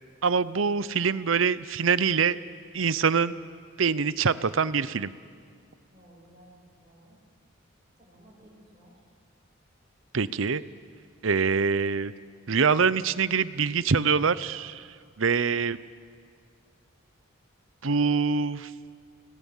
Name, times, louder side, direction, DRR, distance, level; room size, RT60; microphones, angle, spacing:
voice 1, 0.2-2.4 2.7-3.3 3.8-5.1 10.1-10.6 11.2-12.1 12.5-14.8 15.2-15.8 17.8-18.7, right 5 dB, 75° right, 16 dB, 0.7 m, -24 dB
voice 2, 5.9-7.2 8.0-8.9, right 1 dB, 20° right, -8 dB, 5.2 m, -55 dB
29.5 x 19.0 x 7.3 m, 2.1 s
head